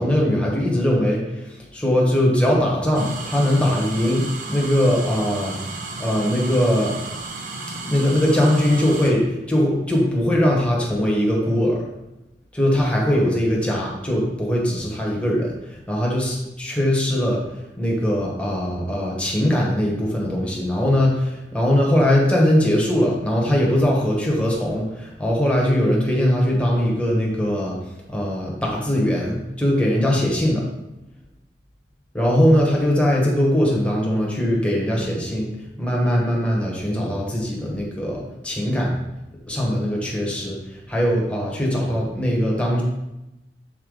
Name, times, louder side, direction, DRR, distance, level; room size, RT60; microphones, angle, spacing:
voice 1, 0.0-5.6 6.0-6.9 7.9-11.8 12.5-17.4 17.8-27.7 28.1-30.6 32.1-35.5 35.8-39.0 39.5-40.6 40.9-42.8, equal, 5° left, -3 dB, 1.2 m, -21 dB
sound 1, 2.9-9.1, right 3 dB, 50° right, 0.8 m, -33 dB
6.5 x 4.0 x 3.9 m, 0.96 s
head